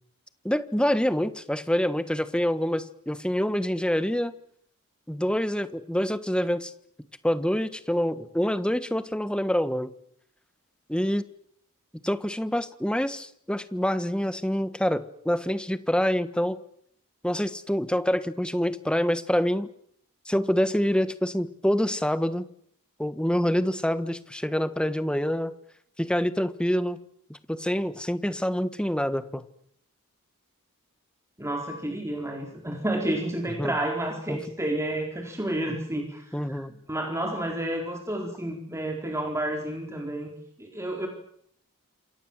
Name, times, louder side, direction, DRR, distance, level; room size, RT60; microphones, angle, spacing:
voice 1, 0.4-4.3 5.1-6.7 7.2-9.9 10.9-11.2 12.0-16.6 17.2-19.7 20.3-22.4 23.0-25.5 26.0-27.0 27.5-29.4 33.6-33.7 34.3-34.4 36.3-36.7, equal, 5° left, 12 dB, 1.3 m, -26 dB
voice 2, 31.4-36.6 36.9-40.3 40.6-41.1, right 1 dB, 15° right, 1 dB, 4.3 m, -30 dB
28.0 x 22.5 x 7.5 m, 0.68 s
head